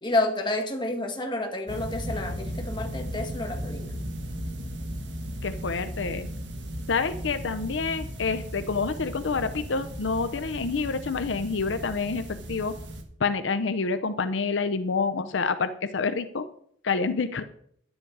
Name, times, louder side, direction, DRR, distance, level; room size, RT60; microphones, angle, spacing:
voice 1, 0.0-3.9, left 2 dB, 25° left, 4 dB, 1.7 m, -29 dB
sound 1, 1.7-13.0, equal, 70° right, 1.7 m, -36 dB
voice 2, 5.4-6.3 6.9-12.7 13.2-16.4 16.8-17.4, left 4 dB, 80° left, 11 dB, 0.7 m, -28 dB
11.0 x 9.7 x 4.7 m, 0.66 s
head